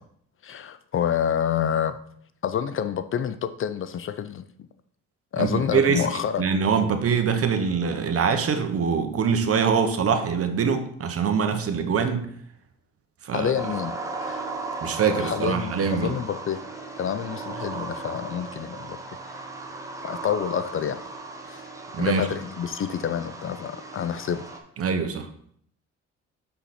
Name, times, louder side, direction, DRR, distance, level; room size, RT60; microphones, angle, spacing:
voice 1, 0.4-2.0 2.4-4.4 5.3-6.5 13.3-13.9 14.2-14.5 15.1-16.6 17.0-19.4 20.0-21.0 21.5-21.6 22.0-24.5, left 9 dB, 45° left, 11 dB, 0.4 m, -28 dB
voice 2, 5.4-6.1 6.4-12.3 13.2-13.5 14.8-16.1 21.9-22.3 24.8-25.3, right 6 dB, 50° right, 7 dB, 1.0 m, -24 dB
sound 1, 13.6-24.6, right 3 dB, 10° right, 1.1 m, -36 dB
5.7 x 5.7 x 4.2 m, 0.66 s
cardioid pair, 90°, 30 cm